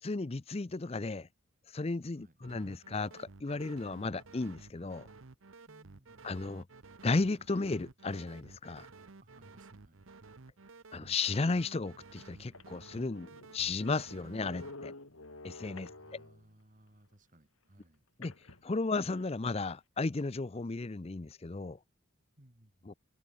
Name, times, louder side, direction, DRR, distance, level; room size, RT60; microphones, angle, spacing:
voice 1, 0.0-1.3 1.7-5.1 6.2-6.7 7.0-8.9 10.9-13.3 13.5-14.9 15.4-15.9 18.2-18.3 18.6-21.8 22.9-23.0, left 3 dB, 30° left, 0.5 m, -34 dB
sound 1, 2.4-14.8, right 3 dB, 75° right, 1.0 m, -54 dB
voice 2, 5.7-6.3 9.2-10.1 15.8-18.0 22.4-22.9, right 1 dB, 40° right, 2.7 m, -62 dB
sound 2, 12.2-12.3 12.5-16.5 18.2-19.3, left 2 dB, 90° left, 4.3 m, -51 dB
open air
head